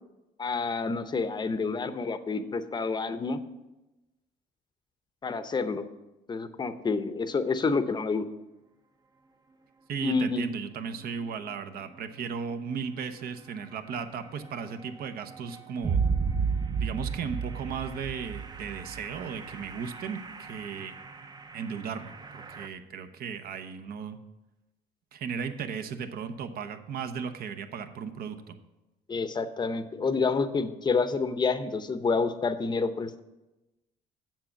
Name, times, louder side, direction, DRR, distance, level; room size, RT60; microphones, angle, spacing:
voice 1, 0.4-3.4 5.2-5.8 6.3-8.2 10.0-10.5 29.1-33.2, left 4 dB, 25° left, 11 dB, 0.7 m, -28 dB
voice 2, 9.9-16.0 16.8-21.0 21.5-24.2 25.1-28.6, right 6 dB, 60° right, 9 dB, 0.8 m, -36 dB
sound 1, 11.0-11.1 11.5-11.6 13.6-13.7 13.9-22.7, right 5 dB, 25° right, 0.6 m, -34 dB
7.6 x 7.2 x 5.8 m, 1.0 s
cardioid pair, 110°, 17 cm